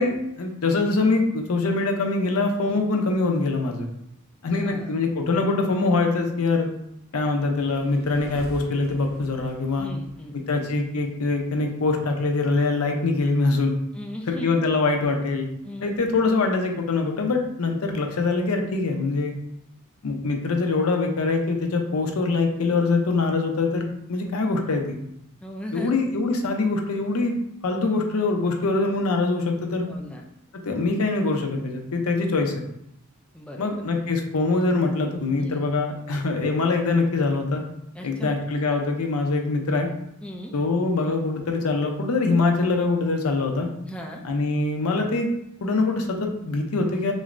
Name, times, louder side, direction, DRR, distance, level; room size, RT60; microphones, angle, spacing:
voice 1, 0.0-3.9 4.4-6.7 7.1-9.9 10.3-13.7 14.3-15.5 15.8-19.3 20.0-25.0 25.7-27.4 27.6-29.9 30.6-32.5 33.6-37.6 38.0-39.9 40.5-43.7 44.2-45.3 45.6-47.1, left 3 dB, 90° left, 3 dB, 0.6 m, -23 dB
voice 2, 4.4-5.0 9.8-10.7 13.9-14.5 15.6-16.0 25.4-25.9 29.9-30.2 33.3-33.8 35.4-35.7 37.9-38.4 40.2-40.5 43.9-44.2, equal, 5° left, 0 dB, 0.3 m, -37 dB
sound 1, 7.5-10.9, equal, 80° right, 0.9 m, -45 dB
6.2 x 2.1 x 2.5 m, 0.77 s
head